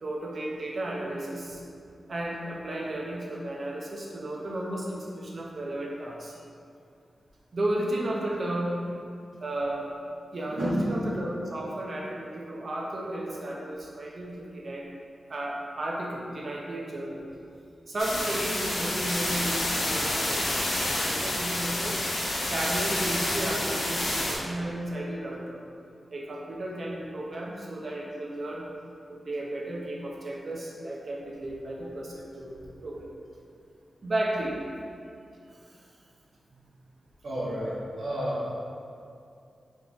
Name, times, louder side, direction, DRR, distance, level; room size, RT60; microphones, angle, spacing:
voice 1, 0.0-1.6 2.1-6.4 7.5-8.8 9.4-9.9 10.3-14.9 15.3-17.2 17.9-22.0 22.4-25.6 26.1-28.7 29.1-33.1 34.0-34.6 35.5-35.6, right 1 dB, 50° right, -2 dB, 0.6 m, -33 dB
voice 2, 10.5-11.0 37.2-37.7 38.0-38.4, equal, 80° right, -9 dB, 1.1 m, -30 dB
sound 1, 18.0-24.4, left 1 dB, 85° left, 0.8 m, -29 dB
3.5 x 2.9 x 3.9 m, 2.4 s
wide cardioid pair, 140°, 0 cm